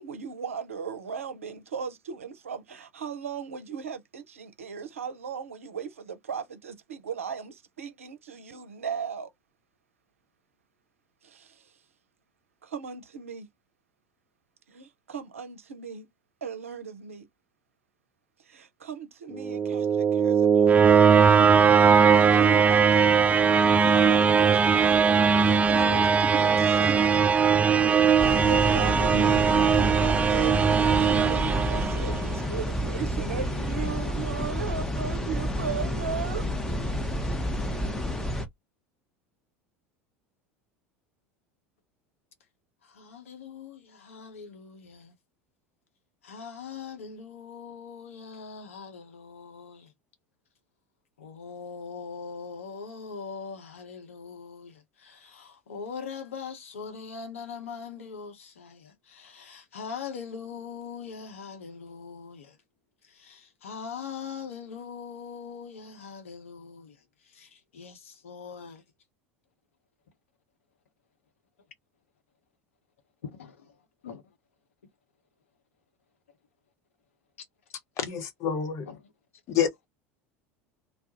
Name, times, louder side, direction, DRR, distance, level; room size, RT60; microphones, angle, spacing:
voice 1, 0.0-9.3 11.2-11.7 12.6-13.5 14.7-16.1 16.4-17.3 18.4-21.1 21.7-23.2 23.6-25.0 25.4-27.3 28.0-36.5, right 6 dB, 80° right, 0.5 m, -37 dB
sound 1, 19.3-32.4, right 6 dB, 20° right, 0.3 m, -20 dB
sound 2, 28.2-38.5, equal, 10° left, 0.7 m, -30 dB
voice 2, 42.9-45.1 46.2-49.9 51.2-62.6 63.1-67.0 67.3-68.8 73.2-73.6 74.0-74.2 78.0-78.1 78.8-79.0, left 6 dB, 75° left, 0.8 m, -41 dB
voice 3, 78.0-78.9 79.5-79.9, left 8 dB, 45° left, 0.8 m, -28 dB
2.3 x 2.0 x 2.7 m
figure-of-eight pair, 75°, 7 cm